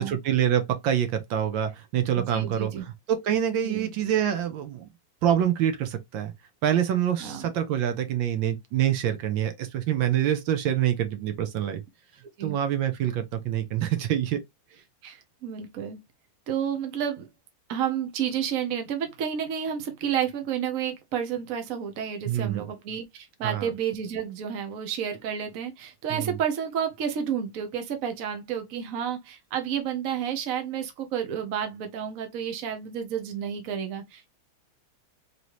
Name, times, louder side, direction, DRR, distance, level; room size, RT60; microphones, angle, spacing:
voice 1, 0.0-2.7 3.1-4.9 5.2-6.3 6.6-11.8 12.4-14.4 22.3-22.7 23.4-23.7 26.1-26.4, right 10 dB, 75° right, 1.4 m, -26 dB
voice 2, 2.1-2.8 3.6-3.9 7.2-7.5 12.4-12.6 15.0-16.0 16.5-17.3 17.7-34.3, right 8 dB, 55° right, 1.1 m, -31 dB
4.0 x 3.2 x 3.0 m
omnidirectional pair, 2.2 m